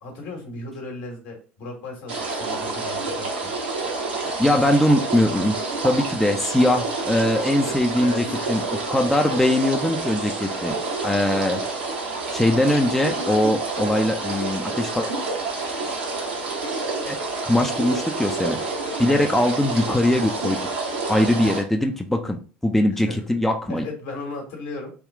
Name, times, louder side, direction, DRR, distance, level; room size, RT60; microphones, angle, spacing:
voice 1, 0.0-3.5 7.6-8.4 19.1-19.3 21.4-21.5 23.1-23.2 23.7-24.9, left 2 dB, 65° left, 1 dB, 1.4 m, -36 dB
sound 1, 2.1-21.6, right 3 dB, 75° right, 1.1 m, -28 dB
voice 2, 4.4-5.5 5.8-8.6 8.9-10.8 11.0-11.6 12.3-15.1 17.1-17.2 17.5-18.6 19.0-20.6 21.1-23.8, left 1 dB, 5° left, 3 dB, 0.5 m, -21 dB
3.6 x 2.3 x 3.5 m, 0.38 s
hypercardioid pair, 70°, 6 cm